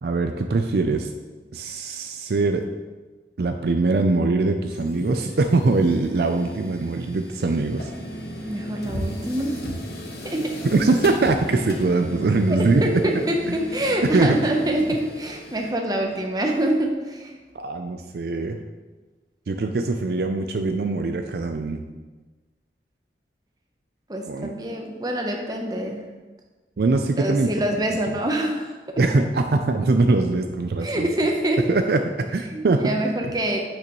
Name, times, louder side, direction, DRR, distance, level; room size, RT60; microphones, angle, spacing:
voice 1, 0.0-1.1 1.5-2.7 3.4-7.9 10.6-12.8 13.5-13.6 14.0-14.4 17.5-18.6 19.5-21.8 24.2-24.5 26.8-27.5 29.0-31.1 31.7-32.0 32.3-32.9, right 3 dB, 60° right, 6 dB, 0.4 m, -22 dB
sound 1, 4.7-15.7, equal, 60° left, 0.9 m, -36 dB
voice 2, 8.4-9.6 10.2-10.6 12.8-17.4 24.1-26.0 27.2-29.0 30.8-31.7 32.5-33.6, right 1 dB, 20° right, 2 dB, 0.8 m, -25 dB
8.4 x 5.9 x 3.0 m, 1.3 s
head